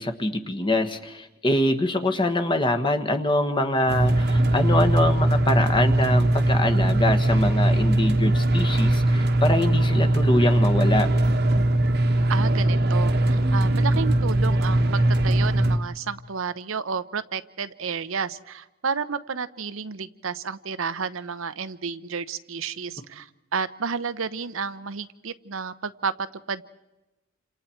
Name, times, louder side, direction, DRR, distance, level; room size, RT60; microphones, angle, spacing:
voice 1, 0.0-11.1, left 1 dB, 25° left, 6 dB, 1.4 m, -24 dB
sound 1, 3.9-15.8, right 1 dB, 50° right, 1.3 m, -20 dB
voice 2, 12.3-26.6, right 5 dB, 70° right, 12 dB, 0.8 m, -31 dB
28.5 x 27.0 x 4.5 m, 1.0 s
head